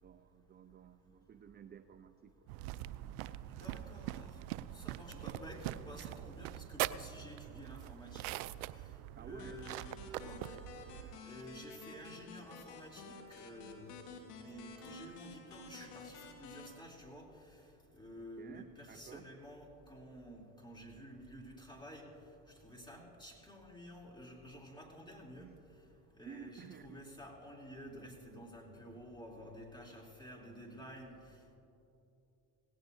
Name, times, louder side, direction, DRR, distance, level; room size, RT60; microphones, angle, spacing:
voice 1, 0.0-2.5 9.2-9.6 18.2-19.3 25.4-25.6 26.2-27.0, right 8 dB, 20° right, 10 dB, 0.5 m, -53 dB
sound 1, 2.5-11.2, right 15 dB, 75° right, 0.5 m, -43 dB
voice 2, 3.5-4.4 4.7-8.3 9.2-10.6 11.2-13.9 14.4-17.3 17.9-22.1 22.6-25.5 26.2-31.1, equal, 10° left, -1 dB, 3.2 m, -51 dB
sound 2, 9.4-16.7, left 4 dB, 90° left, 1.7 m, -52 dB
18.0 x 16.5 x 2.7 m, 2.9 s
hypercardioid pair, 75°, 46 cm